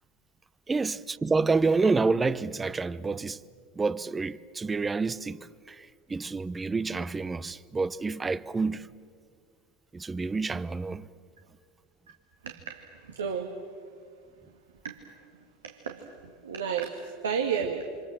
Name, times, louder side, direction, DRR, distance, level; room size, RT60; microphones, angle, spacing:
voice 1, 0.7-3.4 3.8-8.9 9.9-11.1, right 4 dB, 20° right, 0.9 m, -28 dB
voice 2, 12.4-13.7 14.8-15.2 15.6-18.0, right 6 dB, 85° right, 1.9 m, -33 dB
28.5 x 26.5 x 7.6 m
hypercardioid pair, 85°, 0 cm